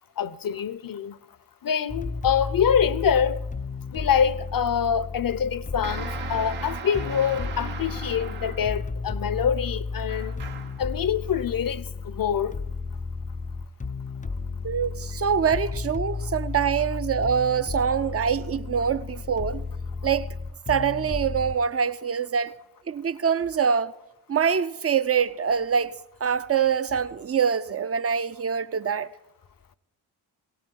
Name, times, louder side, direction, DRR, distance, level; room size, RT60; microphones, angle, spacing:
voice 1, 0.2-1.2 1.6-3.4 3.9-10.3 10.8-12.6, left 8 dB, 45° left, 0.9 m, -25 dB
sound 1, 1.9-21.6, left 4 dB, 15° left, 0.6 m, -33 dB
sound 2, 5.8-8.9 10.1-10.9, right 6 dB, 75° right, 1.5 m, -38 dB
voice 2, 14.6-19.6 20.0-20.3 20.7-22.6 22.9-23.9 24.3-29.1, right 7 dB, 30° right, 0.7 m, -24 dB
17.5 x 17.0 x 4.6 m
hypercardioid pair, 40°, 49 cm